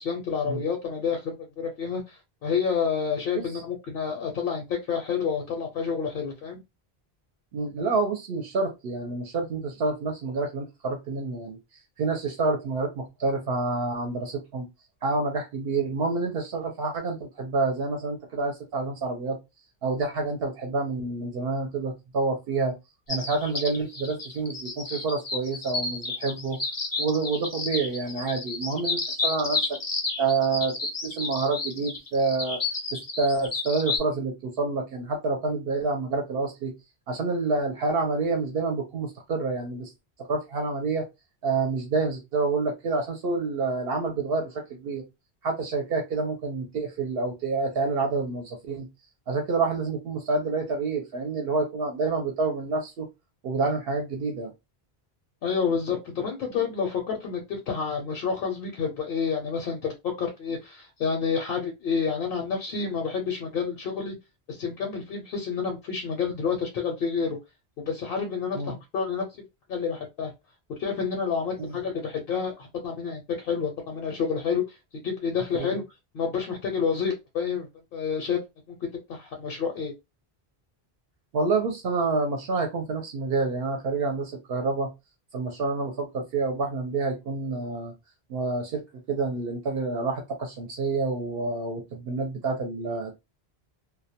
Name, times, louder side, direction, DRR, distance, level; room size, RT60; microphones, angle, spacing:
voice 1, 0.0-6.6 55.4-64.1 64.5-67.4 67.8-69.3 69.7-70.3 70.8-74.8 75.0-75.8 76.1-78.4 78.7-78.8 79.1-79.9, left 6 dB, 70° left, 2 dB, 0.8 m, -29 dB
voice 2, 7.5-11.6 12.0-14.7 15.0-19.4 19.8-22.7 23.1-26.6 27.0-29.8 30.2-30.7 31.0-32.6 32.9-36.7 37.1-39.9 40.3-41.1 41.4-45.0 45.4-48.9 49.3-53.1 53.4-54.5 68.6-68.7 71.6-71.8 75.5-75.7 81.3-84.9 85.3-87.9 88.3-88.8 89.1-93.1, right 3 dB, 70° right, 3 dB, 0.7 m, -28 dB
sound 1, 23.1-34.0, left 3 dB, 30° left, 0.4 m, -31 dB
2.2 x 2.1 x 2.7 m, 0.23 s
omnidirectional pair, 1.0 m